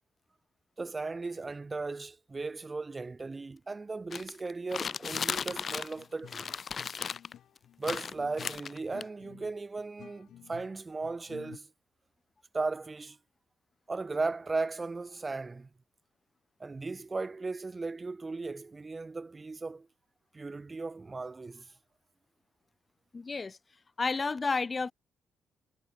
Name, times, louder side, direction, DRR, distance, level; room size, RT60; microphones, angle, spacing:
voice 1, 0.8-6.5 7.8-11.7 12.5-13.2 13.9-15.7 16.6-19.9 20.3-21.7, right 3 dB, 25° right, 0.7 m, -36 dB
sound 1, 4.1-6.0 6.3-7.3 7.8-9.0, left 6 dB, 45° left, 1.1 m, -36 dB
sound 2, 4.9-11.6, left 11 dB, 70° left, 1.3 m, -53 dB
voice 2, 23.1-23.6 24.0-24.9, left 4 dB, 30° left, 0.4 m, -31 dB
cardioid pair, 90°, 0 cm